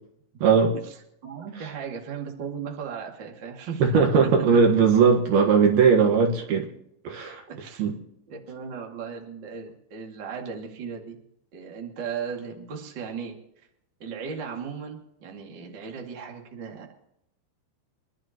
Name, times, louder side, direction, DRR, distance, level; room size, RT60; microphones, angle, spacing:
voice 1, 0.4-0.7 3.8-6.7 7.0-7.4 7.8-7.9, right 5 dB, 65° right, 2 dB, 3.1 m, -19 dB
voice 2, 1.2-3.9 4.2-4.6 7.5-7.9 8.3-11.2 11.5-13.7 14.0-16.9, right 6 dB, 35° right, 0 dB, 2.2 m, -36 dB
26.0 x 12.0 x 3.0 m, 0.75 s
omnidirectional pair, 5.1 m